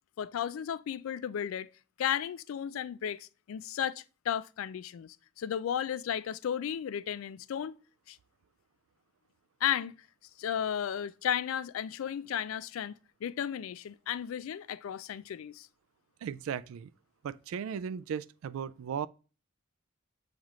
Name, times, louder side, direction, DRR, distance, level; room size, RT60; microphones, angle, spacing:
voice 1, 0.2-1.7 2.0-7.7 8.1-8.2 9.6-10.0 10.4-12.9 13.2-15.7, left 9 dB, 85° left, 0.3 m, -34 dB
voice 2, 16.2-16.9 17.2-19.1, right 7 dB, 85° right, 0.3 m, -36 dB
7.2 x 2.5 x 3.0 m
head